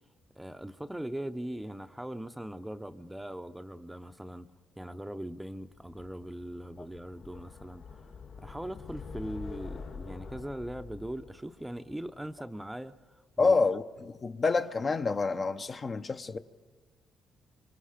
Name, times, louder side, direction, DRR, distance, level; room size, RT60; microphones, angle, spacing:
voice 1, 0.4-4.5 4.8-13.6, right 1 dB, 5° right, 0.7 m, -40 dB
sound 1, 5.7-12.8, left 5 dB, 65° left, 2.9 m, -46 dB
voice 2, 13.4-16.4, left 4 dB, 40° left, 0.7 m, -28 dB
25.5 x 25.5 x 5.1 m
cardioid pair, 90°, 0 cm